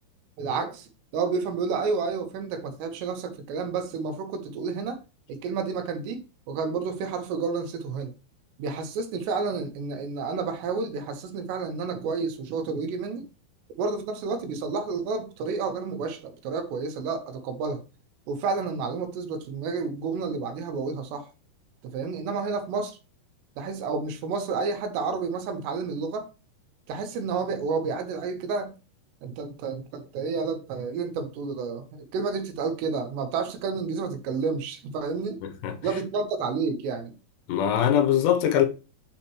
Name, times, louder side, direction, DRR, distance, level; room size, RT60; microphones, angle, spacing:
voice 1, 0.4-5.0 5.3-8.1 8.6-13.3 13.8-17.8 18.3-21.3 21.9-23.0 23.6-26.3 26.9-28.7 29.2-35.4 35.8-37.1, right 4 dB, 85° right, 3.1 m, -30 dB
voice 2, 35.4-35.7 37.5-38.7, left 10 dB, 85° left, 3.0 m, -22 dB
8.9 x 4.3 x 3.0 m
omnidirectional pair, 4.9 m